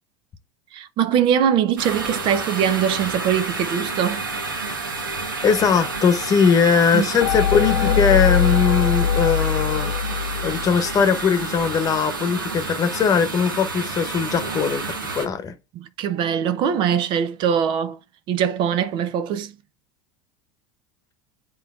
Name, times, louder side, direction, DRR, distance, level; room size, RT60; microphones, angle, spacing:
voice 1, 0.7-4.3 6.9-7.1 15.7-18.0 18.3-19.5, right 8 dB, 50° right, 0.6 m, -22 dB
sound 1, 1.8-15.3, right 3 dB, 90° right, 1.4 m, -30 dB
voice 2, 5.4-9.9 10.4-14.8 15.1-15.5, left 6 dB, 35° left, 1.0 m, -20 dB
sound 2, 7.2-11.0, left 7 dB, 60° left, 0.6 m, -22 dB
10.0 x 3.9 x 2.4 m
hypercardioid pair, 80°, 11 cm